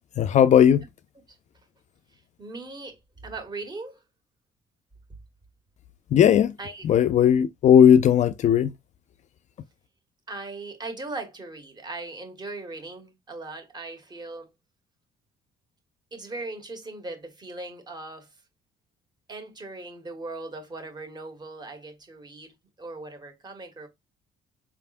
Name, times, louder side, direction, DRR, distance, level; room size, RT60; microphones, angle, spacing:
voice 1, 0.2-0.8 6.1-6.5 6.8-8.7, left 9 dB, 50° left, 0.4 m, -17 dB
voice 2, 2.1-4.0 6.6-6.8 10.3-14.5 16.1-18.4 19.3-23.9, right 2 dB, 25° right, 1.5 m, -39 dB
5.0 x 3.4 x 2.5 m
cardioid pair, 125°, 16 cm